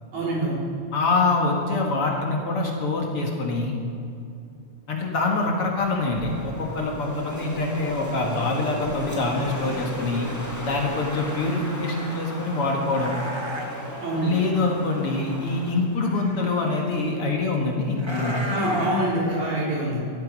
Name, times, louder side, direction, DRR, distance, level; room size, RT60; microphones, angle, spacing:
voice 1, 0.1-0.6 14.0-14.4 18.5-20.1, right 1 dB, 70° right, -4 dB, 5.2 m, -25 dB
voice 2, 0.9-3.7 4.9-10.3 10.6-13.1 14.2-18.6, left 3 dB, 50° left, 0 dB, 2.3 m, -25 dB
sound 1, 5.7-11.5 12.6-14.2 16.0-16.9 18.0-19.5, equal, 20° right, 0.8 m, -36 dB
Wind, 6.0-15.9, left 1 dB, 10° left, 1.1 m, -36 dB
16.5 x 13.5 x 5.3 m, 2.6 s
omnidirectional pair, 3.5 m